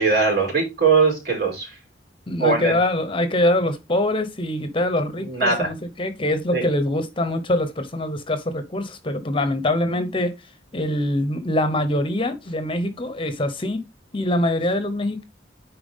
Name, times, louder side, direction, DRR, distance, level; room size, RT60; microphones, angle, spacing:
voice 1, 0.0-1.7 2.4-2.7 5.2-5.7 6.5-6.6, right 4 dB, 55° right, 4.3 m, -20 dB
voice 2, 2.3-10.4 10.7-13.8 14.1-15.2, left 1 dB, 25° left, 1.0 m, -24 dB
9.4 x 4.3 x 3.7 m
head